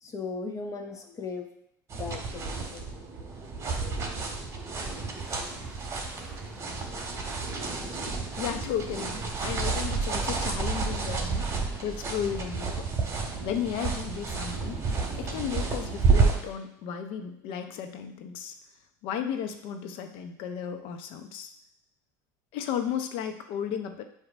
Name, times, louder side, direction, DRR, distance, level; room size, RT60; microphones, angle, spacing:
voice 1, 0.0-1.5 1.9-2.9 3.8-4.2, left 4 dB, 35° left, 4 dB, 1.1 m, -38 dB
sound 1, 1.9-16.4, right 4 dB, 30° right, 1.7 m, -30 dB
Traffic noise roadway noise, 4.4-16.5, right 3 dB, 10° right, 1.5 m, -49 dB
voice 2, 8.3-12.9 13.1-14.9 15.2-18.5 19.0-21.5 22.5-24.0, left 8 dB, 65° left, 7 dB, 0.8 m, -34 dB
7.9 x 2.9 x 5.0 m, 0.74 s
hypercardioid pair, 85°, 10 cm